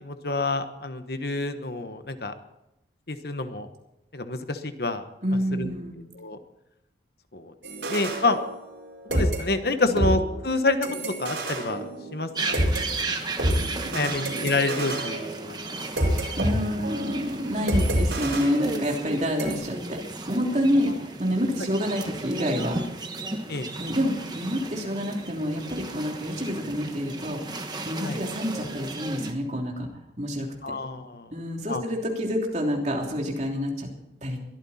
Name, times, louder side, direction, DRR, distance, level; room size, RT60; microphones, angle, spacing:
voice 1, 0.0-2.3 3.1-3.7 4.1-5.0 5.5-5.7 6.1-6.4 7.3-7.5 7.9-8.4 9.1-10.8 11.0-11.8 12.1-12.5 12.8-13.0 13.9-15.5 23.5-23.7 28.0-28.2 30.6-31.3 31.7-31.8, left 2 dB, 55° left, 9 dB, 1.2 m, -28 dB
voice 2, 5.2-6.0 9.8-10.0 13.8-14.2 15.7-16.0 16.4-20.0 20.3-22.8 23.8-29.9 30.2-30.7 31.3-33.9 34.2-34.4, equal, 40° right, 0 dB, 3.2 m, -28 dB
sound 1, 7.6-8.8 9.1-12.8 13.4-16.5 16.8-17.1 17.7-19.1 19.4-19.6, right 1 dB, 80° right, 5.0 m, -28 dB
sound 2, 12.3-29.3, right 2 dB, 25° right, 1.3 m, -35 dB
22.5 x 13.5 x 4.3 m, 0.89 s
head